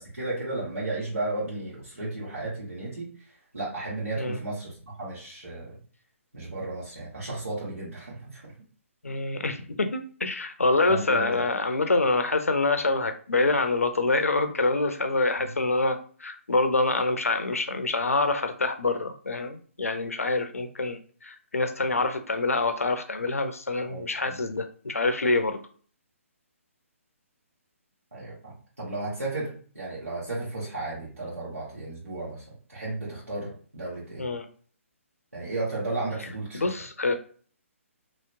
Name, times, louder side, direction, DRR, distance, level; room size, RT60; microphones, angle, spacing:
voice 1, 0.0-3.1 3.5-5.8 6.3-8.5 10.9-11.4 15.4-15.6 23.9-24.4 28.1-34.3 35.3-36.7, right 2 dB, 85° right, -9 dB, 1.5 m, -34 dB
voice 2, 9.0-25.6 34.2-34.5 36.5-37.1, left 3 dB, 80° left, 8 dB, 0.5 m, -26 dB
3.0 x 2.8 x 2.6 m, 0.44 s
figure-of-eight pair, 135°, 8 cm